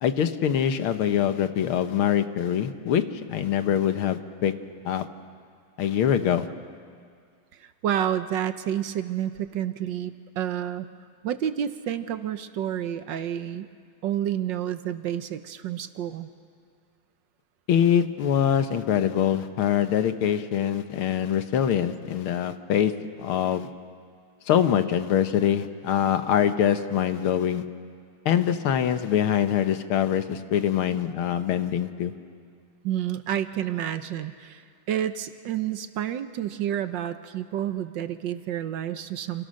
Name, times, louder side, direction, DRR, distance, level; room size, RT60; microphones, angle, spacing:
voice 1, 0.0-3.0 3.3-4.5 4.9-5.1 5.8-6.5 17.7-22.9 23.2-23.7 24.5-27.6 28.3-32.1, left 9 dB, 85° left, 10 dB, 1.9 m, -24 dB
voice 2, 7.5-10.9 11.2-13.7 14.0-16.3 32.8-39.5, right 10 dB, 65° right, 11 dB, 1.4 m, -29 dB
29.5 x 27.0 x 6.5 m, 2.1 s
omnidirectional pair, 2.3 m